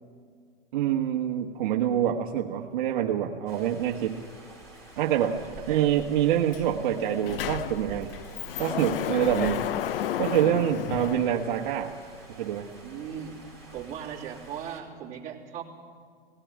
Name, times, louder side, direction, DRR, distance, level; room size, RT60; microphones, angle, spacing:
voice 1, 0.7-4.2 5.0-5.4 5.7-8.1 8.6-9.7 10.2-11.9 12.3-12.7, right 10 dB, 55° right, 1 dB, 1.3 m, -26 dB
sound 1, 3.5-14.8, right 2 dB, 10° left, 4.2 m, -48 dB
voice 2, 5.1-5.9 12.8-13.4 13.7-15.6, right 9 dB, 25° right, -4 dB, 3.2 m, -39 dB
Sliding door, 6.5-6.6 6.9-11.9, left 11 dB, 65° left, 0.7 m, -32 dB
18.5 x 16.0 x 9.4 m, 2.1 s
hypercardioid pair, 145°, 30 cm